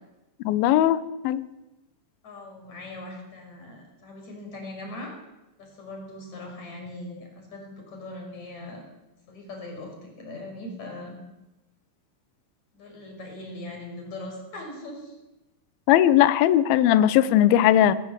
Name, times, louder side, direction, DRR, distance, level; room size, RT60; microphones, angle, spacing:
voice 1, 0.5-1.4 15.9-17.9, left 12 dB, 75° left, 14 dB, 2.3 m, -19 dB
voice 2, 2.2-5.2 5.6-8.8 9.3-11.2 12.7-15.2, left 2 dB, 40° left, 1 dB, 6.9 m, -40 dB
22.5 x 15.5 x 8.1 m, 1.0 s
omnidirectional pair, 5.3 m